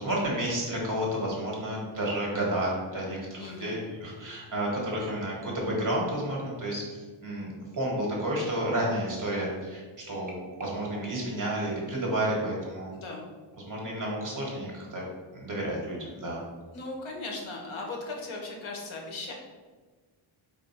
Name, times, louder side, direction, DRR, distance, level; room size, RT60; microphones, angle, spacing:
voice 1, 0.0-12.9 13.7-15.0 15.3-16.4, right 1 dB, 40° right, -2 dB, 1.0 m, -31 dB
voice 2, 3.4-3.8 12.9-13.2 16.7-19.3, left 2 dB, 70° left, 0 dB, 0.9 m, -38 dB
sound 1, 7.4-12.4 13.0-13.3 13.5-13.6, right 3 dB, 20° right, 0.6 m, -50 dB
4.1 x 2.1 x 4.1 m, 1.4 s
wide cardioid pair, 170°, 49 cm